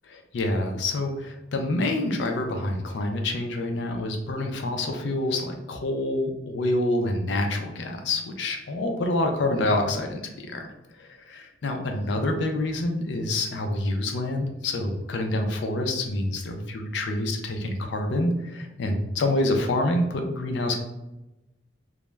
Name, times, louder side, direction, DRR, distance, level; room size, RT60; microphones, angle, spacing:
voice 1, 0.1-10.7 11.0-20.8, left 1 dB, 65° left, 4 dB, 0.4 m, -27 dB
2.3 x 2.0 x 3.1 m, 0.96 s
head